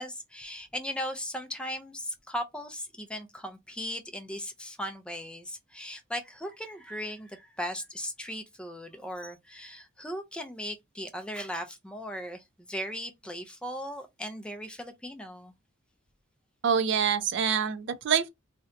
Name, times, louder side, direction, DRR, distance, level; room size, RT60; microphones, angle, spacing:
voice 1, 0.0-15.5, equal, 5° left, 0.4 m, -38 dB
voice 2, 16.6-18.3, right 7 dB, 60° right, 0.4 m, -26 dB
2.6 x 2.1 x 3.7 m
head